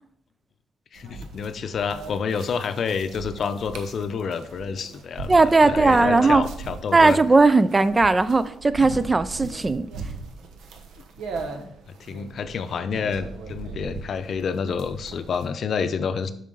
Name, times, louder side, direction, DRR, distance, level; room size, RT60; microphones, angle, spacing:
voice 1, 0.9-7.2 11.4-16.3, left 6 dB, 55° left, 11 dB, 0.6 m, -29 dB
sound 1, 1.0-15.5, right 4 dB, 80° right, 1.0 m, -39 dB
voice 2, 5.3-6.5 6.9-9.9, right 3 dB, 25° right, 14 dB, 0.3 m, -18 dB
7.2 x 5.5 x 3.8 m, 0.70 s
cardioid pair, 90°, 0 cm